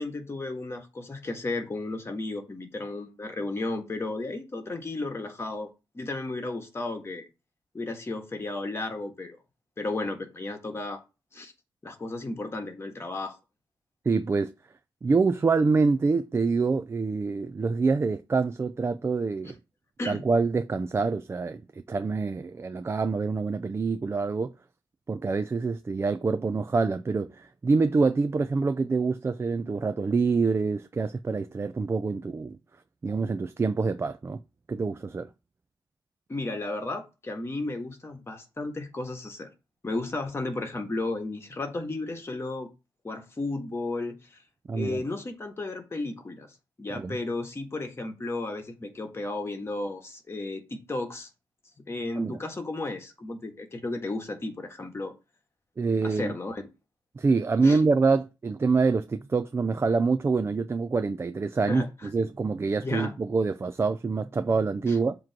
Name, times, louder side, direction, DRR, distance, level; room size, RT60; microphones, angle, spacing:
voice 1, 0.0-5.7 5.9-7.2 7.7-9.4 9.8-11.0 11.3-11.5 11.8-13.4 20.0-20.3 36.3-39.5 39.8-42.7 43.0-44.4 44.7-46.5 46.8-51.3 51.9-55.1 56.0-56.7 57.6-57.8 61.7-61.9 62.8-63.1 64.9-65.0, left 2 dB, 30° left, 1.5 m, -33 dB
voice 2, 14.0-14.5 15.0-19.6 20.1-24.5 25.1-32.6 33.0-34.4 34.7-35.3 44.7-45.0 46.9-47.2 52.2-52.4 55.8-56.3 57.2-65.2, right 4 dB, 30° right, 0.4 m, -26 dB
7.4 x 3.0 x 6.0 m
wide cardioid pair, 95°, 8 cm